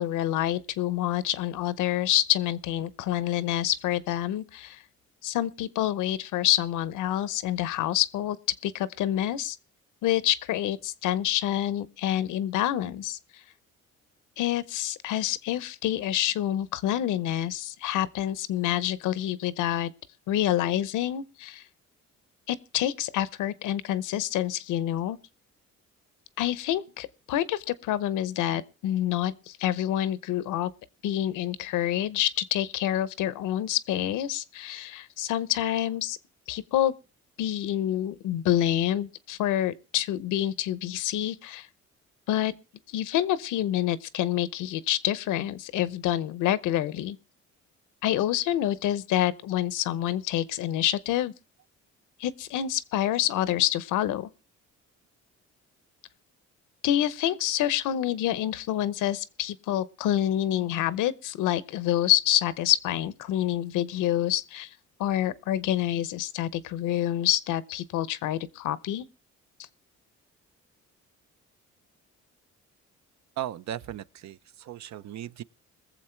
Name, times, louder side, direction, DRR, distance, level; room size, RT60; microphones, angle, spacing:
voice 1, 0.0-4.8 5.2-8.4 8.6-9.6 10.0-13.2 14.4-19.9 20.3-21.6 22.5-25.2 26.4-30.7 31.0-36.2 36.5-36.9 37.4-41.7 42.3-42.5 42.9-47.2 48.0-51.3 52.2-54.3 56.8-64.7 65.0-69.1, left 12 dB, 90° left, 0.8 m, -27 dB
voice 2, 73.4-75.4, right 11 dB, 65° right, 0.7 m, -37 dB
21.0 x 7.4 x 4.5 m
cardioid pair, 90°, 30 cm